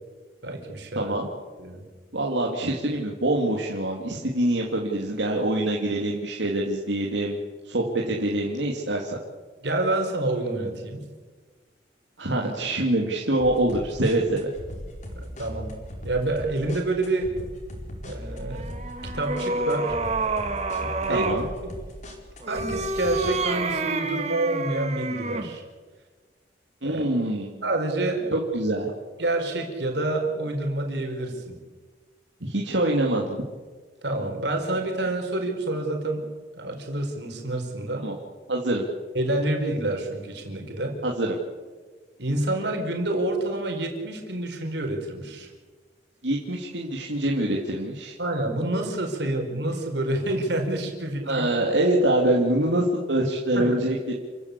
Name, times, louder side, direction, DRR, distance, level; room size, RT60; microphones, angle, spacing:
voice 1, 0.4-1.2 1.6-1.8 9.6-11.0 15.1-15.7 16.0-17.3 18.0-18.7 19.1-19.9 21.1-21.3 21.6-21.7 22.5-25.6 26.8-27.0 27.6-28.3 29.2-31.6 34.0-36.2 36.6-38.0 39.1-40.9 42.2-45.5 48.2-51.5 53.5-53.8, right 2 dB, 70° right, 3 dB, 5.1 m, -28 dB
voice 2, 0.9-1.3 2.1-7.4 7.6-9.2 12.2-14.5 20.8-21.5 26.8-27.6 28.3-28.9 32.4-33.4 38.0-38.1 38.5-38.9 41.0-41.4 46.2-48.1 51.3-54.0, right 1 dB, 85° right, -1 dB, 2.9 m, -25 dB
sound 1, 13.4-23.3, equal, 40° left, 4.6 m, -39 dB
sound 2, 18.5-21.5 22.4-25.6, right 3 dB, 40° right, 2.1 m, -29 dB
29.0 x 15.5 x 8.5 m, 1.4 s
head